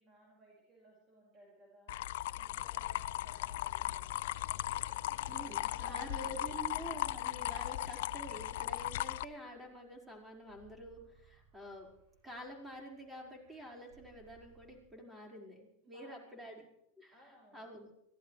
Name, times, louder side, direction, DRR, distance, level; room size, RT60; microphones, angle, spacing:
voice 1, 0.0-4.5 5.2-6.6 7.5-7.7 15.8-16.3 17.1-17.6, equal, 30° right, -3 dB, 5.3 m, -61 dB
sound 1, 1.9-9.2, left 15 dB, 70° left, 0.5 m, -37 dB
sound 2, 4.3-14.8, right 5 dB, 60° right, 6.7 m, -66 dB
voice 2, 5.3-11.9 12.2-16.6 17.0-17.9, right 1 dB, 10° right, 0 dB, 4.9 m, -48 dB
23.5 x 16.5 x 3.3 m, 0.80 s
hypercardioid pair, 100°, 0 cm